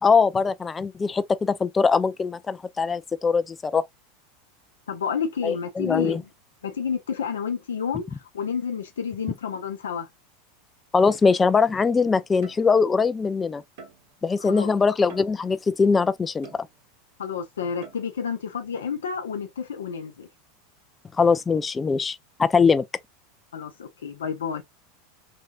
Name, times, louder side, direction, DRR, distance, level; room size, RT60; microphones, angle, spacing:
voice 1, 0.0-3.8 5.4-6.2 10.9-13.6 14.2-16.5 21.1-22.8, left 5 dB, 20° left, 0.4 m, -22 dB
voice 2, 4.9-6.2 6.6-10.1 14.4-14.7 17.2-20.3 23.5-24.6, left 6 dB, 85° left, 0.6 m, -30 dB
sound 1, 12.4-13.0 13.8-14.3 15.1-15.7 16.4-17.1 17.8-18.3, right 4 dB, 65° right, 1.3 m, -47 dB
3.2 x 2.7 x 2.4 m
hypercardioid pair, 95°, 0 cm